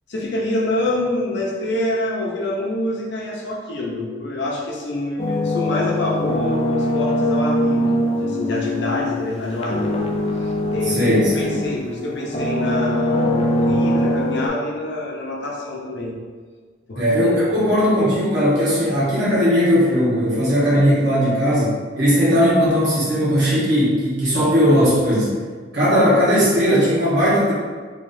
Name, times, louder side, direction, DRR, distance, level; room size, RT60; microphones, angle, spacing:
voice 1, 0.1-9.9 10.3-16.1 16.9-17.0, left 1 dB, 65° left, -3 dB, 0.8 m, -26 dB
sound 1, 5.2-11.9 12.3-14.5, left 1 dB, 30° left, 0.4 m, -22 dB
voice 2, 10.8-11.6 16.9-25.4 25.7-27.5, equal, 65° right, -8 dB, 1.4 m, -18 dB
3.6 x 3.5 x 2.7 m, 1.5 s
head